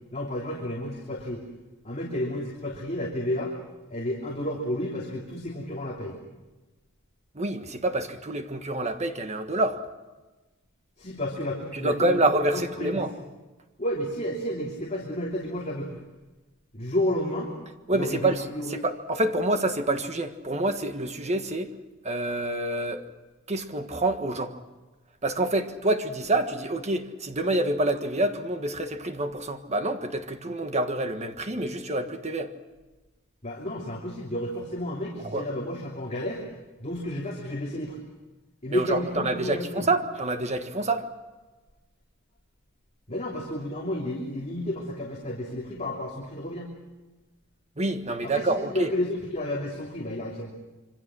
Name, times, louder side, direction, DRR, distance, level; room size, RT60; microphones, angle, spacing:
voice 1, 0.1-1.4 1.8-3.6 3.9-6.2 11.0-13.3 13.8-16.0 16.7-17.5 17.9-18.8 33.4-36.4 36.8-38.0 38.6-39.9 43.1-46.7 48.2-50.5, left 1 dB, 30° left, 3.0 m, -31 dB
voice 2, 7.3-9.8 11.7-13.1 17.9-21.7 22.0-23.1 23.5-24.5 25.2-32.5 35.2-35.4 38.7-41.1 47.8-48.9, right 2 dB, 30° right, 1.5 m, -27 dB
26.5 x 24.5 x 6.3 m
head